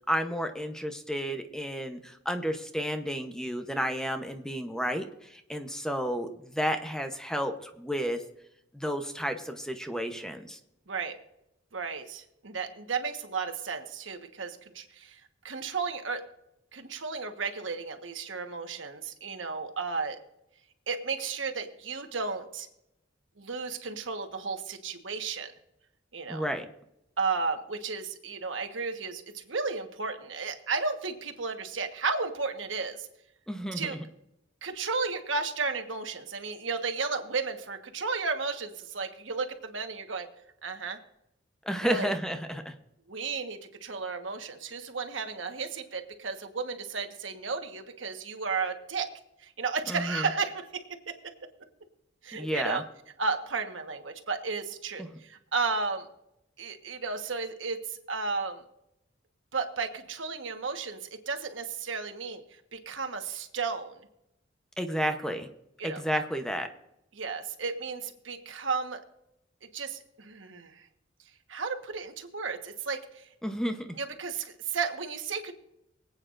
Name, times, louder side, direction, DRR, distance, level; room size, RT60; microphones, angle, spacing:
voice 1, 0.1-8.2 8.7-10.6 26.3-26.7 33.5-33.9 41.6-42.7 49.9-50.3 52.3-52.8 55.0-55.1 64.8-65.5 65.8-66.7 73.4-73.9, equal, 5° left, 7 dB, 0.8 m, -31 dB
voice 2, 11.7-16.2 16.7-20.2 20.9-22.7 23.4-25.5 26.1-26.5 27.2-33.1 33.7-34.0 34.6-40.3 40.6-41.0 41.8-42.1 43.1-49.1 49.4-51.1 52.2-52.8 53.2-56.1 56.6-58.6 59.5-62.4 62.7-63.9 65.8-66.0 67.1-69.0 69.7-70.9 71.5-73.3 74.0-75.5, right 4 dB, 90° right, 6 dB, 1.4 m, -33 dB
24.5 x 8.9 x 2.5 m, 0.83 s
head